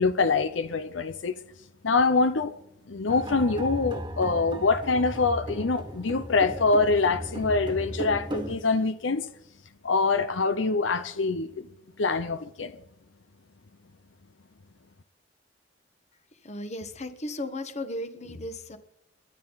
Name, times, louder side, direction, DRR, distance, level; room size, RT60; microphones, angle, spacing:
voice 1, 0.0-1.3 1.8-2.5 2.9-9.3 9.8-11.7 12.0-12.7, left 4 dB, 75° left, 0.7 m, -25 dB
sound 1, 3.1-8.6, right 1 dB, 25° right, 1.5 m, -36 dB
voice 2, 16.4-18.8, left 1 dB, 35° left, 1.4 m, -35 dB
29.5 x 11.0 x 4.1 m
head